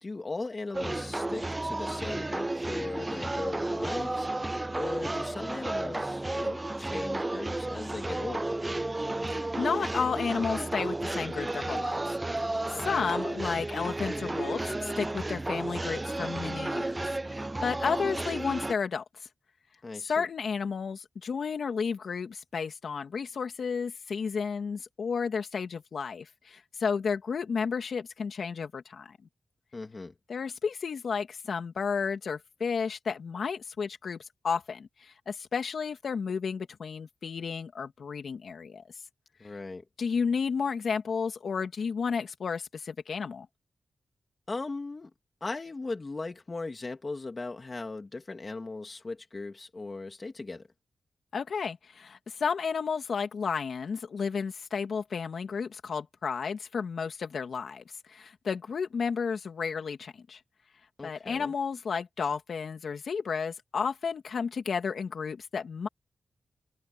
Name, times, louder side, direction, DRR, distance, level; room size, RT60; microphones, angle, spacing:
voice 1, 0.0-4.3 4.8-8.5 19.8-20.3 29.7-30.1 39.4-39.8 44.5-45.1 45.4-50.7 61.0-61.5, left 3 dB, 30° left, 3.0 m, -38 dB
sound 1, 0.7-18.7, right 2 dB, 20° right, 0.4 m, -32 dB
voice 2, 9.3-12.0 12.4-19.0 20.0-29.2 30.3-38.8 40.0-43.5 51.3-60.4 61.0-65.9, left 5 dB, 65° left, 2.8 m, -32 dB
wide cardioid pair, 125°, 0 cm